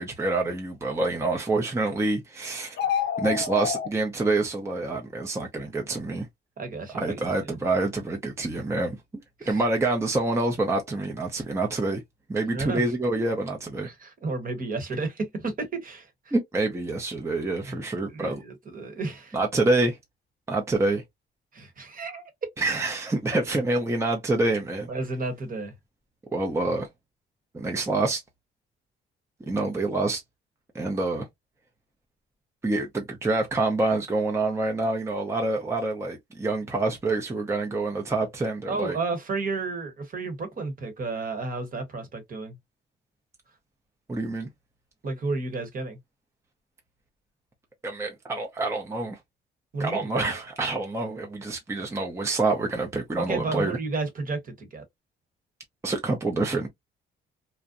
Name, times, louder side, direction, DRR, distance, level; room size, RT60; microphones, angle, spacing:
voice 1, 0.0-2.8 3.2-6.3 6.9-12.0 12.3-13.9 16.3-18.4 19.3-20.0 20.5-21.0 22.6-24.9 26.3-26.9 27.5-28.2 29.5-30.2 30.7-31.3 32.6-39.0 44.1-44.5 47.8-49.2 49.8-53.8 55.8-56.7, right 2 dB, 15° right, 0.5 m, -27 dB
sound 1, 2.7-3.9, left 8 dB, 60° left, 0.6 m, -27 dB
voice 2, 6.6-7.6 9.4-9.6 12.5-12.8 13.8-16.3 17.7-17.8 18.1-19.4 21.5-22.3 24.9-25.7 38.7-42.6 45.0-46.0 49.7-50.4 53.2-54.8, right 3 dB, 45° right, 1.0 m, -32 dB
2.6 x 2.0 x 2.4 m
cardioid pair, 90°, 20 cm